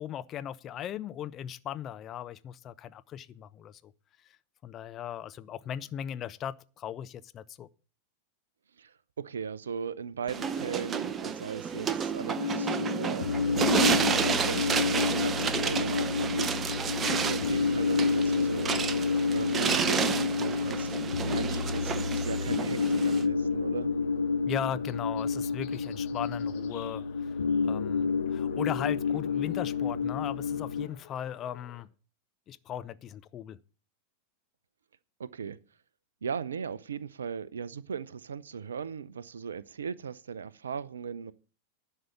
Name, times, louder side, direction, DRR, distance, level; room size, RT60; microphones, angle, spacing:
voice 1, 0.0-3.9 4.2-4.4 4.6-7.7 24.5-27.3 27.6-31.9 32.5-33.6, left 10 dB, 30° left, 0.5 m, -38 dB
voice 2, 8.8-18.8 19.3-23.9 35.2-35.6 36.2-41.3, right 6 dB, 70° right, 0.6 m, -38 dB
sound 1, 10.3-23.2, right 6 dB, 20° right, 0.7 m, -31 dB
sound 2, 12.4-30.9, left 4 dB, 70° left, 0.7 m, -29 dB
sound 3, 17.4-31.8, left 11 dB, 50° left, 1.8 m, -55 dB
11.0 x 5.6 x 8.4 m
figure-of-eight pair, 90°, 0 cm